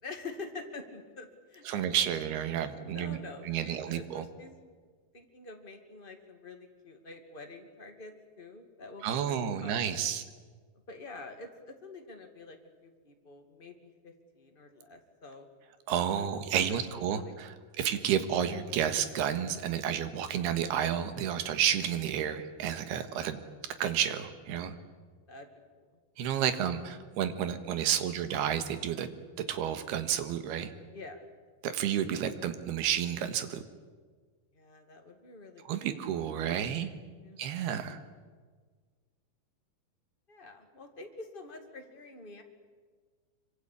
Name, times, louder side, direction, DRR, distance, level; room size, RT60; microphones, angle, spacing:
voice 1, 0.0-1.8 2.9-4.8 5.1-9.8 10.9-12.6 12.8-15.5 16.1-16.3 16.6-16.8 17.1-17.3 17.8-17.9 25.3-25.5 25.8-26.0 30.9-31.3 34.5-36.0 36.6-36.8 37.2-37.6 40.3-42.4, left 3 dB, 25° left, 4 dB, 1.2 m, -47 dB
voice 2, 1.7-3.2 3.5-4.2 9.0-10.2 15.9-23.4 23.8-24.7 26.2-29.1 29.5-30.7 31.6-33.6 35.6-36.9 37.4-38.0, right 9 dB, 70° right, 10 dB, 3.4 m, -31 dB
25.0 x 24.5 x 8.6 m, 1.5 s
omnidirectional pair, 4.9 m